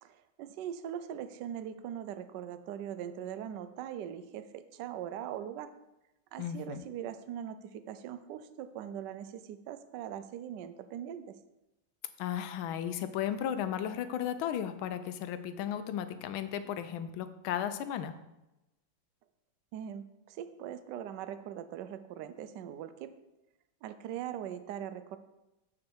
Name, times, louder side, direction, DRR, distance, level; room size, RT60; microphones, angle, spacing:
voice 1, 0.0-5.7 6.3-11.4 19.7-23.1 23.8-25.2, right 10 dB, 75° right, 12 dB, 1.1 m, -41 dB
voice 2, 6.4-6.8 12.2-18.1, left 10 dB, 80° left, 11 dB, 1.4 m, -35 dB
7.4 x 6.2 x 4.6 m, 0.94 s
omnidirectional pair, 2.3 m